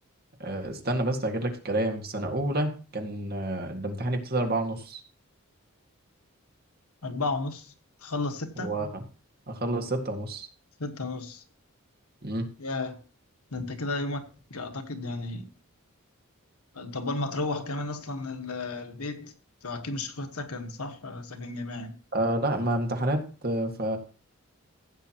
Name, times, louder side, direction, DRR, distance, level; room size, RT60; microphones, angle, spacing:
voice 1, 0.4-5.0 8.6-9.0 9.5-10.5 12.2-12.4 22.1-24.0, right 1 dB, 45° right, 1.9 m, -29 dB
voice 2, 7.0-7.7 8.0-8.7 10.8-11.4 12.6-13.0 13.5-15.5 16.7-19.3 19.6-21.9, left 2 dB, 90° left, 1.5 m, -33 dB
15.5 x 8.2 x 3.0 m
head